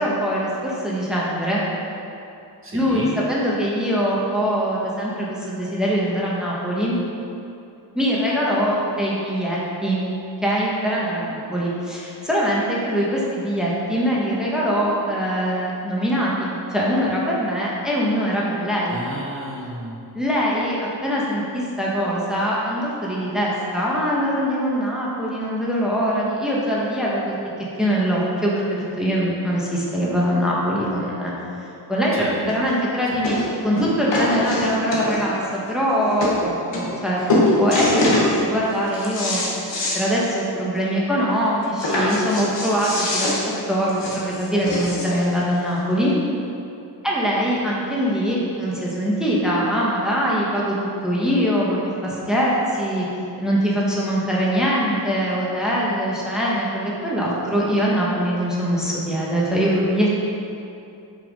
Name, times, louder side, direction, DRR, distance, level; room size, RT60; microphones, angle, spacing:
voice 1, 0.0-1.6 2.7-7.0 7.9-10.1 10.4-19.0 20.1-27.4 27.8-31.3 31.9-39.4 39.9-43.3 43.7-46.1 47.0-50.8 51.0-53.1 53.4-60.2, equal, ahead, -6 dB, 1.2 m, -22 dB
voice 2, 2.6-3.1 18.9-19.9 32.1-32.3, right 1 dB, 30° right, -4 dB, 1.4 m, -31 dB
sound 1, 32.5-32.6 33.2-33.5 33.8-35.4 35.9-36.0 36.2-36.4 36.7-37.0 37.3-38.3 38.7-40.0 40.4-40.5 40.8-40.9 41.8-45.2 46.1-46.2, left 2 dB, 85° left, 1.6 m, -23 dB
6.5 x 5.7 x 5.3 m, 2.6 s
wide cardioid pair, 140°, 43 cm